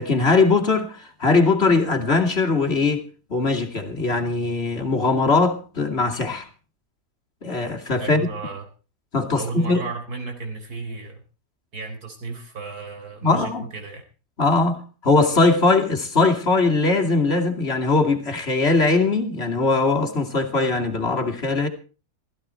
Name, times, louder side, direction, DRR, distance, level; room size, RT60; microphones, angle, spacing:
voice 1, 0.0-3.0 3.3-6.5 7.4-8.2 9.1-9.8 13.2-13.7 14.4-21.7, left 3 dB, 40° left, 2.7 m, -20 dB
voice 2, 8.0-8.6 9.3-11.2 11.7-14.0, right 4 dB, 65° right, 4.7 m, -33 dB
16.0 x 15.5 x 4.4 m
omnidirectional pair, 1.7 m